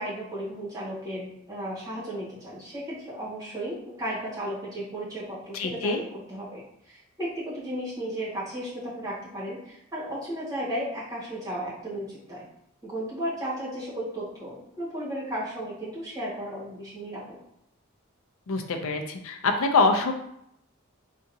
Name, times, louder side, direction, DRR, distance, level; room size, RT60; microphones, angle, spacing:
voice 1, 0.0-12.4 12.8-17.4, right 1 dB, 15° right, -9 dB, 1.5 m, -34 dB
voice 2, 5.5-6.0 18.5-20.1, left 3 dB, 75° left, 4 dB, 0.5 m, -24 dB
3.8 x 2.4 x 2.7 m, 0.76 s
head